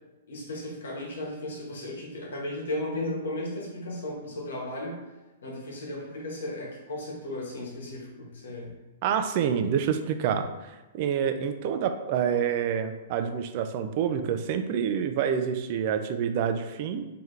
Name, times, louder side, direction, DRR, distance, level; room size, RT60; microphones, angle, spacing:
voice 1, 0.3-5.0 5.4-8.7, left 1 dB, 75° left, -2 dB, 1.3 m, -35 dB
voice 2, 9.0-17.1, right 8 dB, 45° right, 8 dB, 0.4 m, -27 dB
3.8 x 2.9 x 3.2 m, 1.1 s
hypercardioid pair, 130°, 0 cm